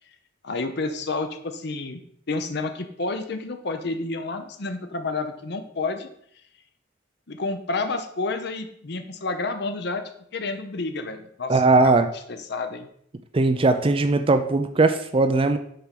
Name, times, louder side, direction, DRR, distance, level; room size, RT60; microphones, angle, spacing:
voice 1, 0.4-2.0 2.3-6.1 7.3-10.0 10.3-12.0 12.3-12.9, left 3 dB, 60° left, 7 dB, 0.8 m, -30 dB
voice 2, 11.5-12.1 13.3-15.6, right 3 dB, 30° right, 8 dB, 0.5 m, -19 dB
6.8 x 4.7 x 5.9 m, 0.67 s
head